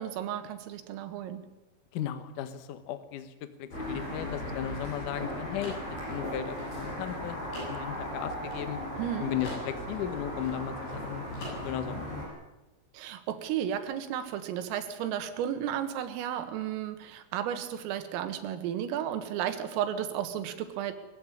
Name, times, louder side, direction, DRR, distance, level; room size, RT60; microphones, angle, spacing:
voice 1, 0.0-1.4 9.0-9.3 12.9-21.0, right 10 dB, 85° right, 9 dB, 4.2 m, -33 dB
voice 2, 1.9-3.3 3.6-5.8 6.1-8.8 9.2-11.3 11.6-12.0, left 11 dB, 70° left, 10 dB, 1.9 m, -36 dB
sound 1, 3.7-12.3, equal, 35° left, 8.8 m, -37 dB
sound 2, 3.9-9.1 9.4-11.0 11.3-12.0, left 1 dB, 55° left, 9.0 m, -45 dB
22.0 x 14.5 x 9.9 m, 1.0 s
omnidirectional pair, 5.8 m